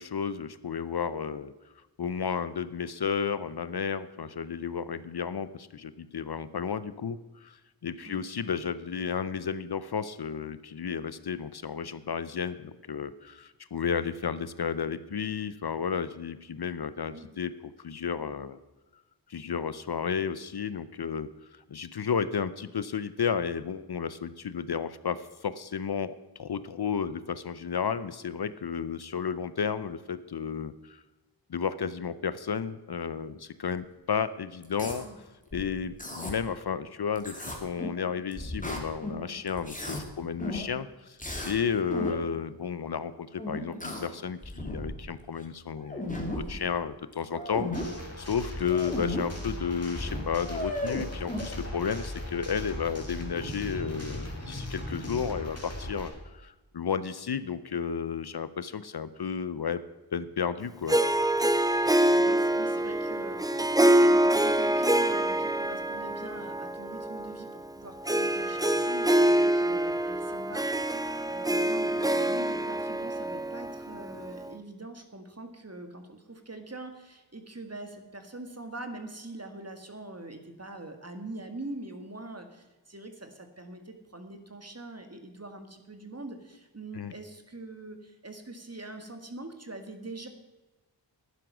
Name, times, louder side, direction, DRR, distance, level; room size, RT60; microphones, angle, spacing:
voice 1, 0.0-1.5 2.0-18.6 19.3-21.3 21.7-26.1 26.4-31.0 31.5-35.1 35.5-41.2 41.4-46.1 46.3-59.8 60.1-61.0 86.9-87.1, left 6 dB, 55° left, 14 dB, 0.7 m, -32 dB
sound 1, 34.6-35.0 35.5-36.3 37.2-38.0 38.3-39.2 39.5-40.0 40.4-40.7 41.2-41.6 41.9-42.2 43.4-44.1 44.4-45.0 45.4-45.5 45.8-46.5 47.1-47.9 48.6-49.2 49.6-49.7 49.9-51.4, left 1 dB, 15° left, 2.7 m, -35 dB
sound 2, 47.7-56.1, left 1 dB, 30° left, 3.4 m, -38 dB
Harp, 60.9-74.5, right 1 dB, 10° right, 0.7 m, -26 dB
voice 2, 62.1-90.3, right 2 dB, 35° right, 7 dB, 1.9 m, -43 dB
11.5 x 9.9 x 6.1 m, 1.1 s
wide cardioid pair, 40°, 45 cm